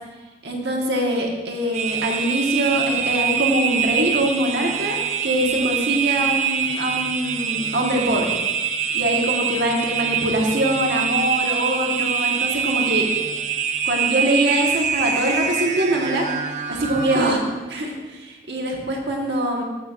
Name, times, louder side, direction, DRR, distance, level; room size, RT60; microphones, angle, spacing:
voice 1, 0.4-5.0 5.2-8.3 8.9-13.1 13.8-16.2 16.7-17.4 17.7-19.6, right 1 dB, 80° right, 0 dB, 1.5 m, -23 dB
sound 1, 1.7-17.3, right 7 dB, 40° right, 0.4 m, -25 dB
14.0 x 6.2 x 2.5 m, 1.2 s
head